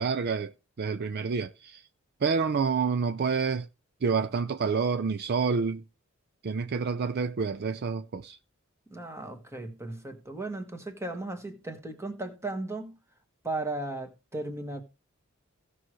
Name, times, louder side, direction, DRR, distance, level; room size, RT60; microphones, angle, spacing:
voice 1, 0.0-1.8 2.2-3.7 4.0-5.8 6.4-8.4, right 5 dB, 50° right, 0.5 m, -28 dB
voice 2, 8.9-13.0 13.4-14.8, right 2 dB, 15° right, 1.6 m, -36 dB
17.0 x 6.3 x 3.1 m
head